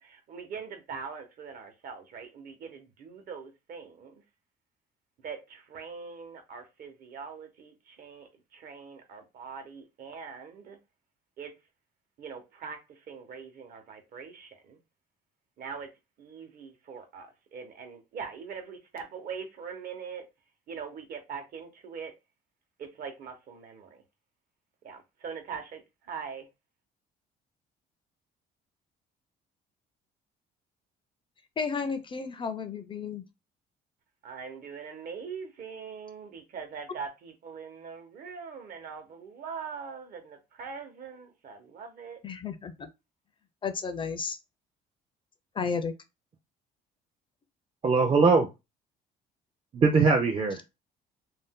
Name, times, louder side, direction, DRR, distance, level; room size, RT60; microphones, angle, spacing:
voice 1, 0.0-4.1 5.2-10.8 11.4-11.5 12.2-12.8 13.1-14.8 15.6-15.9 16.2-20.2 20.7-22.1 22.8-24.0 24.8-25.8 26.1-26.5 34.2-42.2, right 6 dB, 60° right, 0.9 m, -42 dB
voice 2, 31.6-33.2 42.2-42.9 43.6-44.4 45.6-45.9, left 5 dB, 30° left, 0.4 m, -32 dB
voice 3, 47.8-48.5 49.7-50.6, right 4 dB, 30° right, 0.5 m, -21 dB
2.6 x 2.1 x 3.6 m
cardioid pair, 110°, 17 cm